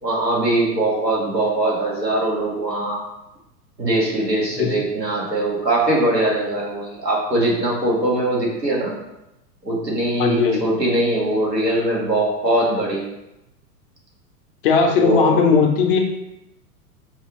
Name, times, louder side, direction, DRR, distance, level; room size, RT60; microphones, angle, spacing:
voice 1, 0.0-3.0 3.8-8.9 9.6-13.1 14.9-15.4, right 1 dB, 90° right, -4 dB, 1.4 m, -21 dB
voice 2, 10.2-10.6 14.6-16.0, left 5 dB, 35° left, 2 dB, 0.5 m, -17 dB
5.3 x 2.3 x 3.3 m, 0.89 s
figure-of-eight pair, 100°, 48 cm